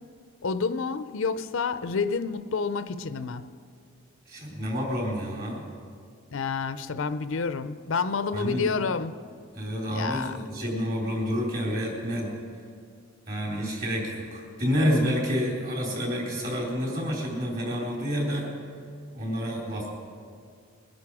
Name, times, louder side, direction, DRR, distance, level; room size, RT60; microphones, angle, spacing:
voice 1, 0.4-3.4 6.3-9.1 9.9-10.4, left 5 dB, 65° left, 0.5 m, -29 dB
voice 2, 4.3-5.6 8.3-8.8 9.5-12.3 13.3-18.5 19.1-19.9, equal, 40° right, 4.0 m, -29 dB
21.5 x 10.5 x 4.9 m
head